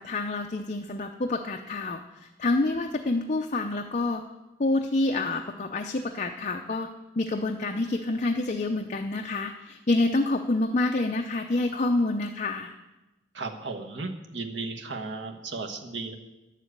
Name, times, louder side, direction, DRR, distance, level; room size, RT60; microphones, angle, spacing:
voice 1, 0.0-4.2 4.6-6.9 7.2-12.7, left 2 dB, 40° left, 3 dB, 0.6 m, -27 dB
voice 2, 13.3-16.1, right 3 dB, 90° right, 4 dB, 1.3 m, -35 dB
11.0 x 7.5 x 8.2 m, 1.0 s
head